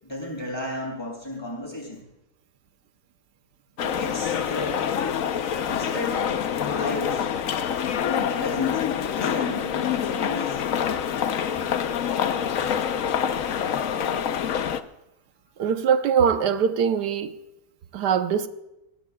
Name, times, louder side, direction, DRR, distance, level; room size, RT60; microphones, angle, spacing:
voice 1, 0.0-2.0 3.8-4.8 5.7-6.2 6.6-7.3 8.1-10.6, left 1 dB, 15° left, 6.6 m, -34 dB
sound 1, 3.8-14.8, left 8 dB, 60° left, 1.1 m, -26 dB
voice 2, 15.6-17.4 17.9-18.5, right 7 dB, 90° right, 1.5 m, -22 dB
22.5 x 18.0 x 2.3 m
omnidirectional pair, 1.7 m